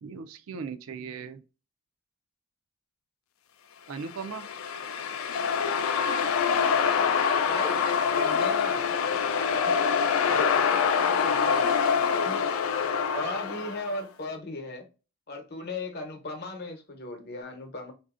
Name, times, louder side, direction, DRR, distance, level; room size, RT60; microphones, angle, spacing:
voice 1, 0.0-1.4 3.9-4.5, right 5 dB, 80° right, 0.4 m, -38 dB
sound 1, 4.1-13.9, left 6 dB, 70° left, 0.3 m, -25 dB
voice 2, 7.4-7.8 8.1-8.9 10.3-11.6 12.2-12.4 13.1-14.8 15.3-17.9, left 2 dB, 50° left, 0.8 m, -37 dB
4.1 x 2.6 x 2.4 m
head